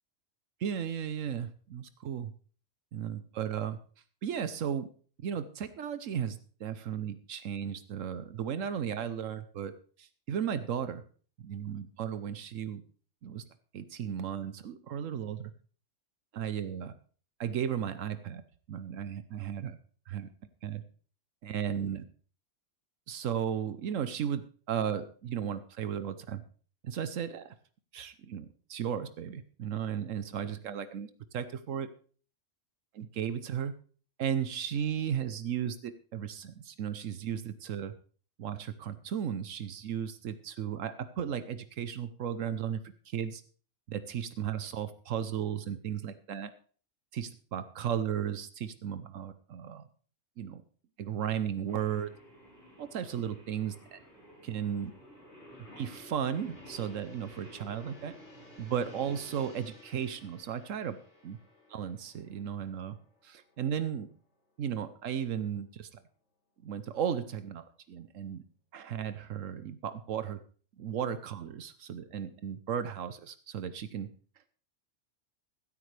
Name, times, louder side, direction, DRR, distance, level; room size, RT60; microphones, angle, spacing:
voice 1, 0.6-2.3 2.9-3.8 4.2-4.9 5.2-9.7 10.0-11.0 11.4-12.8 13.2-13.4 13.7-15.5 16.3-16.9 17.4-18.4 18.7-19.8 20.1-20.3 20.6-20.8 21.4-22.0 23.1-26.4 26.8-27.5 27.9-31.9 32.9-33.7 34.2-37.9 38.4-42.8 43.1-43.4 43.9-46.5 47.1-49.9 50.4-50.6 51.0-52.1 52.8-54.0 54.4-54.9 55.8-58.2 58.6-61.0 61.2-61.4 61.7-63.0 63.2-64.1 64.6-66.0 66.6-68.4 68.7-70.4 70.8-74.1, right 8 dB, 80° right, 11 dB, 1.2 m, -35 dB
Singing, 51.7-59.4, equal, 40° left, 5.5 m, -54 dB
Gong, 52.5-64.6 64.9-65.2, equal, 60° left, 5.0 m, -57 dB
16.0 x 13.0 x 3.3 m, 0.42 s
omnidirectional pair, 1.3 m